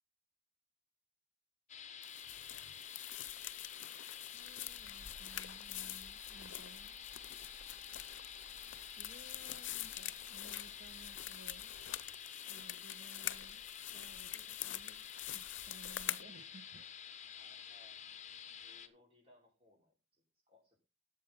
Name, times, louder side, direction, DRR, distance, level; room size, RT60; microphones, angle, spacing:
sound 1, 1.7-18.9, left 8 dB, 35° left, 0.9 m, -50 dB
sound 2, 2.0-16.2, left 14 dB, 70° left, 0.6 m, -46 dB
voice 1, 4.3-7.0 8.9-11.7 12.5-17.0, right 2 dB, 70° right, 1.6 m, -59 dB
sound 3, 4.6-12.2, equal, 10° right, 2.1 m, -62 dB
voice 2, 17.4-18.0 18.6-20.8, left 2 dB, 30° right, 4.7 m, -67 dB
13.0 x 7.6 x 3.9 m
head